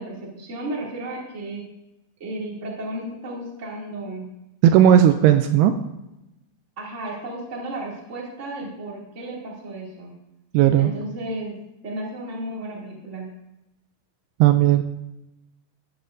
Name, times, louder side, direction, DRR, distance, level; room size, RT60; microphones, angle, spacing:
voice 1, 0.0-1.7 2.2-4.3 6.8-10.1 10.8-11.6 11.8-13.3, right 1 dB, 25° right, -4 dB, 1.6 m, -33 dB
voice 2, 4.6-5.7 10.5-10.9 14.4-14.8, right 10 dB, 85° right, 7 dB, 2.5 m, -15 dB
14.0 x 10.0 x 2.6 m, 0.93 s
omnidirectional pair, 4.9 m